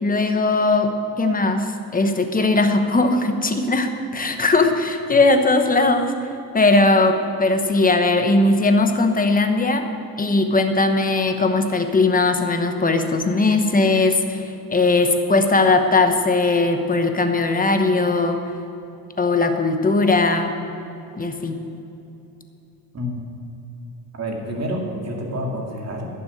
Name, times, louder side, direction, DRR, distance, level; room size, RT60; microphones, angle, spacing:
voice 1, 0.0-6.1 6.5-9.9 10.2-18.4 19.2-20.5 21.2-21.5, left 3 dB, 20° left, 6 dB, 1.1 m, -19 dB
voice 2, 24.1-26.1, equal, 45° right, 0 dB, 2.4 m, -28 dB
11.5 x 7.0 x 8.8 m, 2.9 s
cardioid pair, 105°, 38 cm